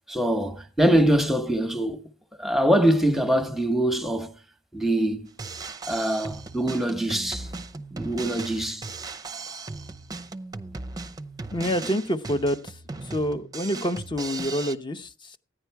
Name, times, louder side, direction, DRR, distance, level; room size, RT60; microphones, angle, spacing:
voice 1, 0.1-2.0 2.4-4.3 4.7-5.2 5.9-7.5 7.9-8.9, right 1 dB, ahead, 1.0 m, -23 dB
Drum kit, 5.3-14.7, right 3 dB, 20° right, 0.6 m, -37 dB
voice 2, 11.5-15.4, equal, 25° left, 0.7 m, -28 dB
15.0 x 10.0 x 4.6 m
head